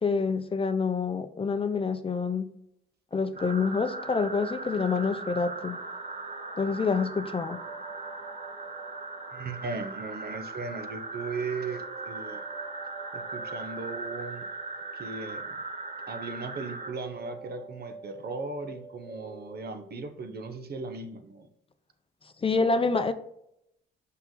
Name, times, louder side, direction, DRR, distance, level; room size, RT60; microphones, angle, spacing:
voice 1, 0.0-2.5 3.1-5.8 6.6-7.6 22.4-23.1, left 4 dB, 25° left, 0.6 m, -27 dB
sound 1, 3.4-16.9, right 3 dB, 35° right, 2.5 m, -39 dB
sound 2, 7.5-10.1 11.5-15.4 16.8-19.9, right 5 dB, 80° right, 1.3 m, -47 dB
voice 2, 9.3-12.4 13.1-14.4 14.9-15.6 16.1-21.5, right 4 dB, 50° right, 1.1 m, -37 dB
5.8 x 5.7 x 3.9 m
cardioid pair, 90°, 20 cm